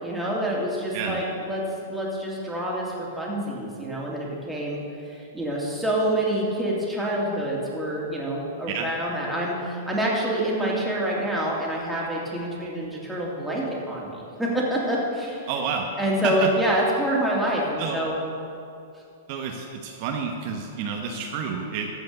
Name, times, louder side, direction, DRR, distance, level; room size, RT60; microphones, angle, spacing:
voice 1, 0.0-4.8 5.0-15.5 16.0-18.2, right 1 dB, 5° right, -5 dB, 2.6 m, -27 dB
voice 2, 15.5-15.9 16.2-16.5 17.8-18.0 19.3-21.9, right 6 dB, 50° right, 2 dB, 1.1 m, -29 dB
14.5 x 5.1 x 6.7 m, 2.5 s
hypercardioid pair, 125°, 0 cm